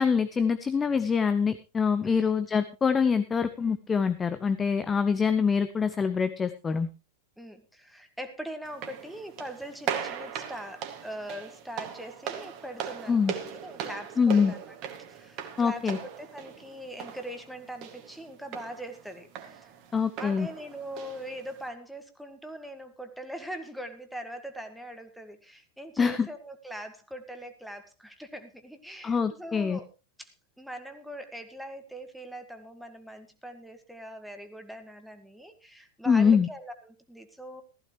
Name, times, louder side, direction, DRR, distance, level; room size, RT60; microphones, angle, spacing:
voice 1, 0.0-6.9 13.1-13.3 14.2-14.5 15.6-16.0 19.9-20.5 26.0-26.3 29.0-29.8 36.1-36.5, left 6 dB, 15° left, 12 dB, 0.7 m, -25 dB
voice 2, 7.4-14.8 15.1-19.7 20.2-29.9 30.2-37.6, right 1 dB, ahead, 7 dB, 1.9 m, -42 dB
sound 1, 8.7-21.7, right 9 dB, 40° right, 2.2 m, -39 dB
15.5 x 14.5 x 3.2 m, 0.30 s
figure-of-eight pair, 90°, 0 cm